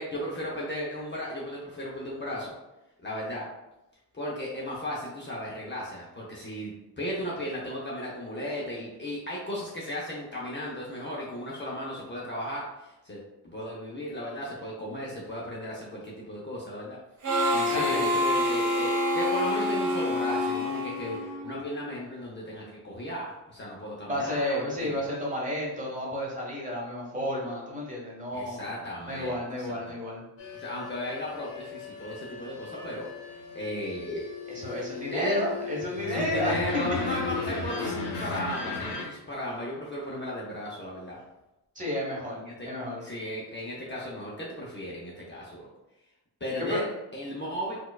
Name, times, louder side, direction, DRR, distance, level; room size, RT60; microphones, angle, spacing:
voice 1, 0.0-2.5 3.0-3.5 4.1-17.0 17.5-24.9 28.3-29.8 30.5-33.1 33.5-34.8 35.1-35.4 36.1-41.2 42.3-42.7 43.0-45.6 46.4-46.9 47.1-47.8, equal, 25° left, -5 dB, 0.7 m, -35 dB
Harmonica, 17.2-21.7, left 1 dB, 85° right, 1.4 m, -27 dB
voice 2, 17.6-18.1 24.1-28.7 29.1-30.2 34.5-36.5 41.7-43.0 46.6-46.8, left 1 dB, 20° right, -4 dB, 1.1 m, -32 dB
sound 1, 30.4-39.0, left 5 dB, 90° left, 0.7 m, -36 dB
4.3 x 2.3 x 2.3 m, 0.96 s
cardioid pair, 105°, 40 cm